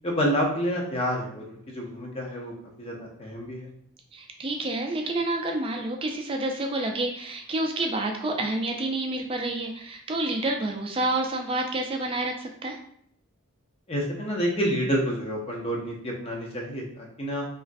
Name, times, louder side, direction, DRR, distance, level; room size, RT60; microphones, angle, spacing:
voice 1, 0.0-2.5 2.8-3.7 13.9-17.5, equal, 25° left, -1 dB, 0.6 m, -28 dB
voice 2, 4.1-12.8, right 2 dB, 25° right, 2 dB, 0.3 m, -29 dB
3.0 x 2.4 x 2.5 m, 0.67 s
head